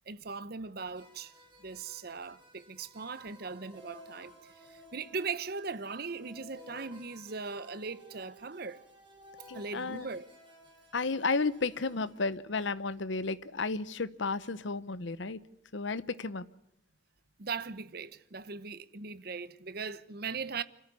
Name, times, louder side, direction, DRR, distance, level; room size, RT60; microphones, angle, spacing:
voice 1, 0.1-1.3 1.6-8.8 9.5-10.3 17.4-20.6, right 4 dB, 50° right, 0.9 m, -39 dB
sound 1, 0.9-12.2, equal, 25° right, 5.2 m, -56 dB
voice 2, 9.5-10.1 10.9-15.4 15.7-16.4, left 4 dB, 65° left, 0.9 m, -33 dB
26.5 x 14.0 x 9.6 m
head